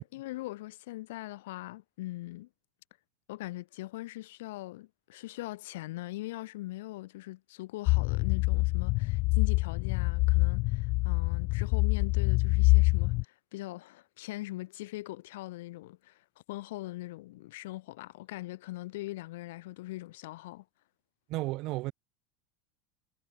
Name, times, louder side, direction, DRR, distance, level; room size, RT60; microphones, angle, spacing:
voice 1, 0.0-2.5 3.3-16.2 16.5-20.6, left 18 dB, 80° left, 2.7 m, -41 dB
sound 1, 7.9-13.2, left 25 dB, 45° left, 0.6 m, -26 dB
voice 2, 21.3-21.9, right 20 dB, 45° right, 1.6 m, -33 dB
supercardioid pair, 170°, 0 cm